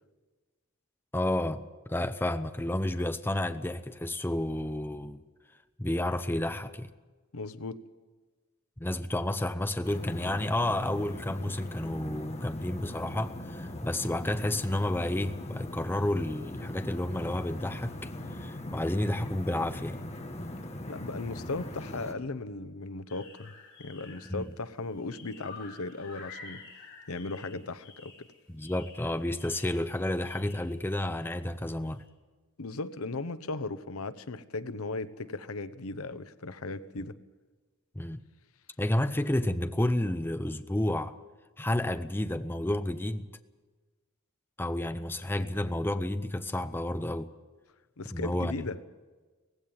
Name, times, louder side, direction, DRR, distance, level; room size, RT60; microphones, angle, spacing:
voice 1, 1.1-5.2 5.8-6.9 8.8-20.0 24.3-24.5 28.5-32.0 38.0-38.2 38.8-41.1 41.6-43.3 44.6-47.3 48.1-48.6, left 1 dB, 10° left, 0.6 m, -31 dB
voice 2, 7.3-7.8 20.9-23.5 23.8-26.6 27.1-28.3 32.6-37.2 48.0-48.8, left 3 dB, 80° left, 0.9 m, -37 dB
sound 1, 9.8-22.1, left 1 dB, 30° left, 1.6 m, -40 dB
sound 2, 23.1-24.6 24.8-31.4 31.8-32.0, left 4 dB, 55° left, 6.4 m, -50 dB
18.0 x 16.0 x 9.5 m
head